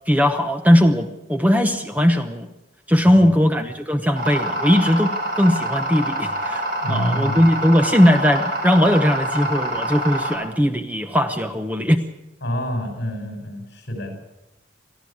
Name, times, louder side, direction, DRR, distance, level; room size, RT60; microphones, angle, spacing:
voice 1, 0.1-2.5 2.9-6.6 6.9-12.0, equal, 10° right, 7 dB, 0.9 m, -18 dB
voice 2, 3.0-3.4 6.8-7.5 12.4-14.2, equal, 60° left, 5 dB, 5.9 m, -27 dB
sound 1, 4.2-10.4, right 1 dB, 55° right, 4.4 m, -26 dB
22.5 x 14.0 x 8.6 m, 0.91 s
head